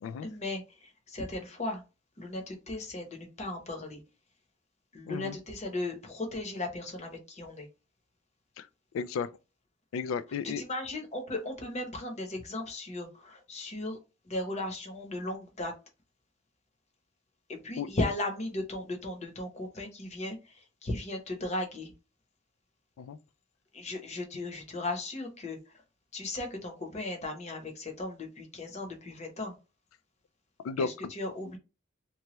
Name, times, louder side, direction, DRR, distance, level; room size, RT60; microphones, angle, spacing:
voice 1, 0.2-1.8 2.2-4.0 4.9-7.7 10.4-14.0 14.2-15.7 17.5-21.9 23.7-25.7 26.1-29.5 30.8-31.6, left 2 dB, 35° left, 0.8 m, -36 dB
voice 2, 5.0-5.4 8.6-8.7 8.9-9.3 9.9-10.6 17.8-17.9 23.0-23.2 30.6-30.9, left 5 dB, 80° left, 0.3 m, -33 dB
3.0 x 2.1 x 3.0 m
head